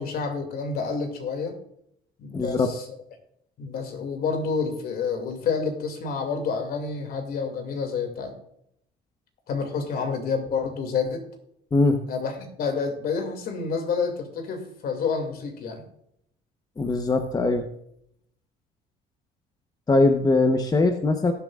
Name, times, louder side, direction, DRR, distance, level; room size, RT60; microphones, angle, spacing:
voice 1, 0.0-1.6 2.2-2.8 3.6-8.4 9.5-11.2 12.1-15.8, left 5 dB, 65° left, 5 dB, 2.4 m, -29 dB
voice 2, 2.3-2.7 11.7-12.0 16.8-17.6 19.9-21.3, left 3 dB, 20° left, 6 dB, 0.9 m, -21 dB
19.0 x 7.4 x 2.4 m, 0.73 s
cardioid pair, 110°, 17 cm